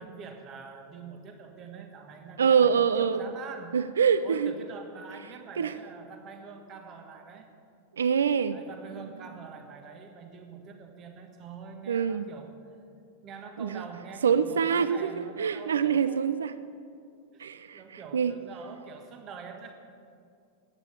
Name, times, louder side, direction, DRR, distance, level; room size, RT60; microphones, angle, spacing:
voice 1, 0.0-3.8 4.2-7.5 8.5-12.5 13.2-16.2 17.3-17.5 17.7-19.7, right 5 dB, 35° right, 5 dB, 1.4 m, -45 dB
voice 2, 2.4-3.3 3.7-4.5 5.6-5.7 8.0-8.6 11.9-12.3 13.6-13.8 14.2-16.5 17.4-18.3, right 7 dB, 65° right, 14 dB, 0.4 m, -25 dB
14.0 x 9.8 x 7.0 m, 2.4 s
figure-of-eight pair, 90°, 0 cm